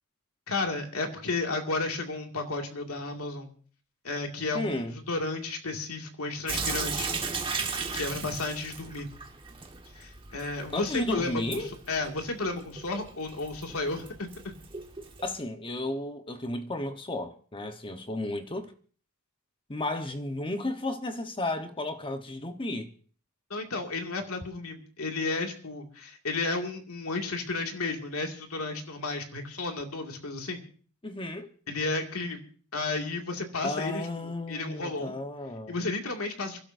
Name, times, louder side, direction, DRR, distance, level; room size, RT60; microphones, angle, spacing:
voice 1, 0.5-3.5 4.0-7.2 7.9-9.1 10.0-14.3 23.5-30.6 31.7-32.4 32.7-35.2 35.7-36.6, left 3 dB, 90° left, 2.3 m, -33 dB
voice 2, 4.5-4.9 10.7-11.7 15.2-18.7 19.7-22.9 31.0-31.5 33.6-35.8, left 2 dB, 25° left, 1.1 m, -33 dB
Sink (filling or washing) / Drip, 6.5-15.4, right 4 dB, 25° right, 1.5 m, -37 dB
27.5 x 12.0 x 2.7 m
head